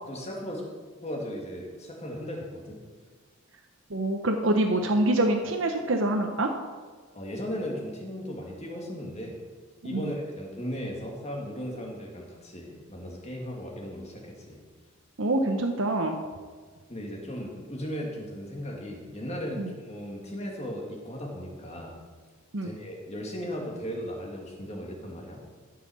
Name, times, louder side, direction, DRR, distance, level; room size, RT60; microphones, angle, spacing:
voice 1, 0.1-0.6 1.0-2.8 7.1-9.4 9.8-14.6 16.9-22.0 22.6-25.4, equal, 30° left, -1 dB, 2.0 m, -36 dB
voice 2, 3.9-6.5 9.9-10.1 15.2-16.2 19.6-19.7 22.5-22.7, right 1 dB, 55° right, 3 dB, 0.8 m, -25 dB
13.5 x 5.7 x 6.3 m, 1.5 s
head